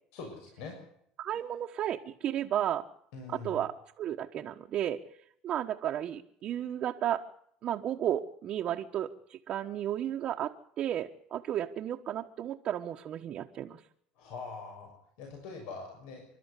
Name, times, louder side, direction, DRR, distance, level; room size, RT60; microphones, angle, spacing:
voice 1, 0.1-0.8 3.1-3.6 14.2-16.3, left 4 dB, 75° left, 2 dB, 6.6 m, -43 dB
voice 2, 1.2-2.9 3.3-5.0 5.4-7.2 7.6-13.8, right 11 dB, 40° right, 2 dB, 1.2 m, -33 dB
28.0 x 12.5 x 8.3 m, 0.69 s
cardioid pair, 140°, 2 cm